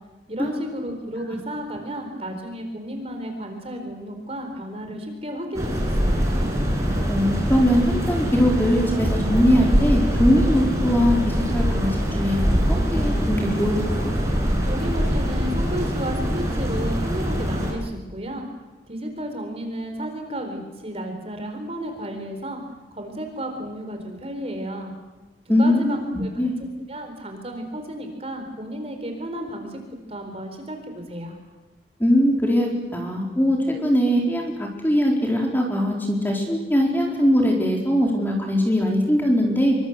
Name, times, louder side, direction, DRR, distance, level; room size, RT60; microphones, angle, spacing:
voice 1, 0.3-6.3 14.6-18.5 18.9-22.6 22.9-24.9 25.5-26.3 26.6-29.8 30.1-31.4, equal, 35° right, 5 dB, 4.2 m, -33 dB
sound 1, 5.5-17.7, equal, 15° right, 6.2 m, -23 dB
voice 2, 7.1-11.9 12.2-14.1 25.5-26.5 32.0-39.8, equal, 10° left, 0 dB, 4.2 m, -21 dB
26.0 x 24.0 x 8.1 m, 1.1 s
head